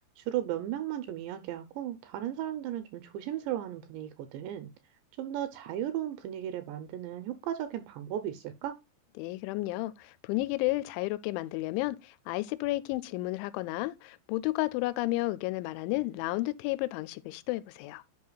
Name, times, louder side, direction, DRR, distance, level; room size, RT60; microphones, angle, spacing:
voice 1, 0.2-4.7 5.2-8.8, right 11 dB, 80° right, 2.7 m, -35 dB
voice 2, 9.2-18.0, left 19 dB, 85° left, 2.8 m, -32 dB
11.0 x 5.5 x 2.3 m
omnidirectional pair, 5.5 m